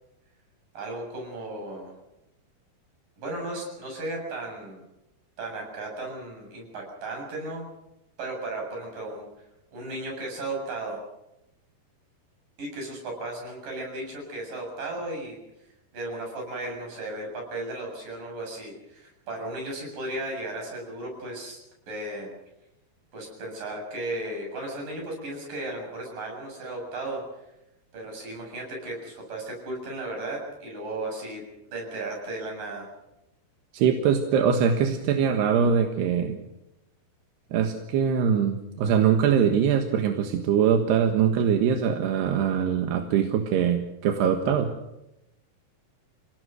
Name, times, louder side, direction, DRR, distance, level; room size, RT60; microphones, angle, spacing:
voice 1, 0.7-1.9 3.2-4.8 5.4-7.6 8.2-9.3 9.7-11.0 12.6-15.4 15.9-21.6 21.9-22.3 23.1-27.2 27.9-31.4 31.7-32.9, right 2 dB, 55° right, 0 dB, 9.2 m, -35 dB
voice 2, 33.7-36.4 37.5-44.7, right 7 dB, 85° right, 5 dB, 3.6 m, -23 dB
30.0 x 18.0 x 6.4 m, 0.89 s
omnidirectional pair, 4.6 m